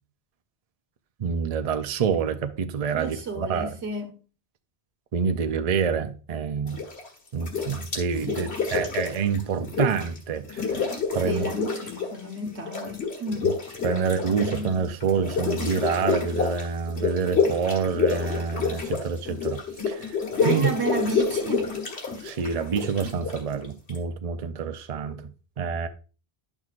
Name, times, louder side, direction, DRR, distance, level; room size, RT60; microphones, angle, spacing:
voice 1, 1.2-3.7 5.1-6.8 7.3-10.7 11.1-11.5 13.4-13.5 13.8-19.6 19.9-20.2 20.4-20.7 22.2-25.3 25.6-25.9, right 6 dB, 45° right, 0.6 m, -27 dB
voice 2, 2.9-4.2 8.3-8.5 11.2-13.6 20.4-21.7, right 2 dB, 85° right, 1.5 m, -32 dB
sound 1, 6.7-7.1 7.4-10.2 10.4-12.2 12.4-24.0, left 5 dB, 75° left, 1.9 m, -28 dB
11.0 x 6.1 x 2.4 m
omnidirectional pair, 1.1 m